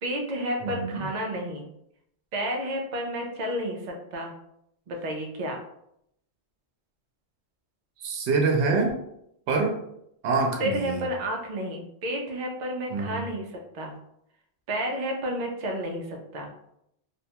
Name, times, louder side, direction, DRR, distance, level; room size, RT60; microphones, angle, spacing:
voice 1, 0.0-1.7 2.3-4.3 4.9-5.6 10.6-13.9 14.7-16.5, equal, 55° right, 1 dB, 0.5 m, -31 dB
voice 2, 8.0-9.0 9.5-9.8 10.2-11.0 12.9-13.2, right 3 dB, 85° right, 2 dB, 0.9 m, -25 dB
2.6 x 2.2 x 2.8 m, 0.76 s
omnidirectional pair, 1.1 m